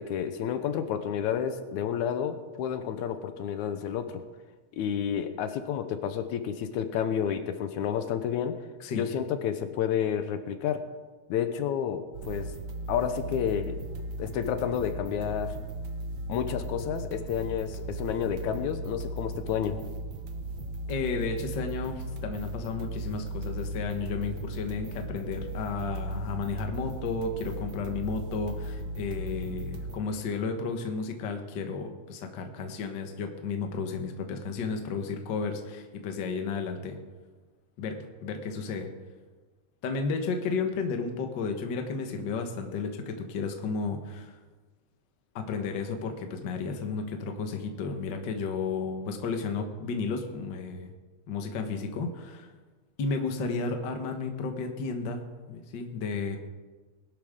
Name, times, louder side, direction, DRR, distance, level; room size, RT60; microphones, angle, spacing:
voice 1, 0.0-4.2 4.8-8.6 8.9-10.9 11.3-12.5 12.9-13.8 14.2-15.6 16.3-19.8, left 8 dB, 80° left, 9 dB, 2.2 m, -30 dB
sound 1, 12.1-30.0, right 2 dB, 60° right, 1.3 m, -37 dB
voice 2, 20.9-37.0 37.8-38.9 39.8-44.3 45.3-50.9 51.3-52.5 53.0-56.4, left 4 dB, 50° left, 5 dB, 1.5 m, -33 dB
20.0 x 12.0 x 3.7 m, 1.3 s
omnidirectional pair, 3.4 m